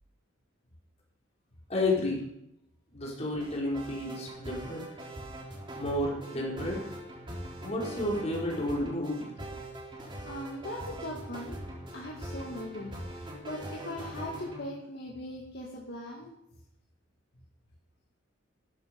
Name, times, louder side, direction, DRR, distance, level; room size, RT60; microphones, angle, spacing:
voice 1, 1.7-2.2 2.9-4.8 5.8-6.9 7.6-9.3, left 1 dB, 30° left, -3 dB, 5.1 m, -31 dB
sound 1, 3.4-14.7, right 1 dB, 25° right, 3.7 m, -42 dB
voice 2, 10.3-11.6 11.9-16.3, left 1 dB, 50° left, -2 dB, 2.3 m, -40 dB
15.5 x 13.5 x 5.4 m, 0.81 s
head